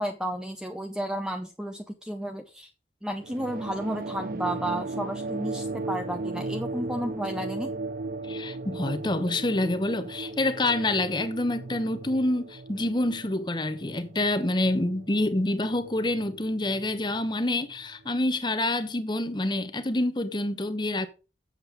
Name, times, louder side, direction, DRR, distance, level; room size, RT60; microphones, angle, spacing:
voice 1, 0.0-2.7 3.0-7.7, equal, 5° right, 0.6 m, -32 dB
sound 1, 3.2-18.1, right 3 dB, 50° right, 0.6 m, -37 dB
voice 2, 8.3-21.1, left 1 dB, 25° left, 1.0 m, -27 dB
7.7 x 7.5 x 5.1 m
head